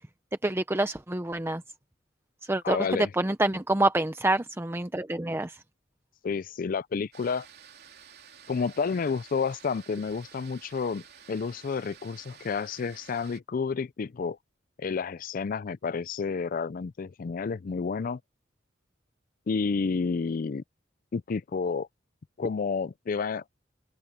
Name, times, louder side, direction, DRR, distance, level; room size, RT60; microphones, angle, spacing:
voice 1, 0.4-1.6 2.4-2.9 3.2-5.6, right 2 dB, 15° right, 0.6 m, -27 dB
voice 2, 2.6-3.1 6.2-7.5 8.5-14.4 14.8-18.2 19.5-20.6 21.1-21.9 22.4-23.4, left 5 dB, 45° left, 0.4 m, -30 dB
sound 1, 7.1-13.4, right 8 dB, 60° right, 3.3 m, -52 dB
open air
head